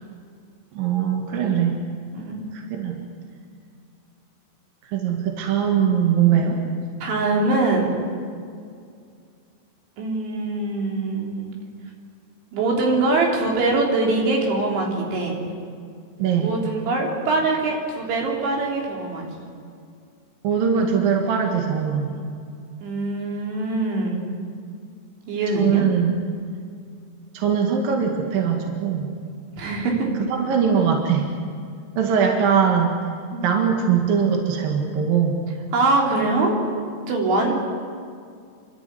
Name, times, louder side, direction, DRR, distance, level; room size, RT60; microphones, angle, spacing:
voice 1, 0.7-1.8 2.5-3.0 4.9-6.6 16.2-16.5 20.4-22.3 25.6-26.1 27.3-29.1 30.3-31.3 32.0-33.0 33.4-35.4, right 7 dB, 60° right, 2 dB, 3.1 m, -21 dB
voice 2, 2.1-2.5 7.0-8.0 10.0-11.5 12.5-15.4 16.4-19.3 22.8-24.2 25.3-25.8 29.5-30.1 33.3-33.5 35.7-36.7 37.1-37.6, right 2 dB, 85° right, 0 dB, 5.7 m, -23 dB
29.0 x 12.0 x 9.5 m, 2.3 s
omnidirectional pair, 5.2 m